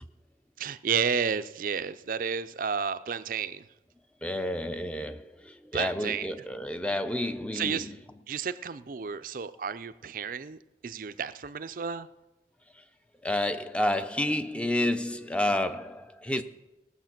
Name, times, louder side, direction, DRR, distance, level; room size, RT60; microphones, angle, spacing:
voice 1, 0.6-3.6 5.7-6.3 7.5-7.9 8.3-12.1, right 6 dB, 50° right, 0.4 m, -32 dB
voice 2, 4.2-8.0 13.2-16.4, left 1 dB, 5° left, 0.5 m, -30 dB
18.5 x 7.1 x 5.9 m
head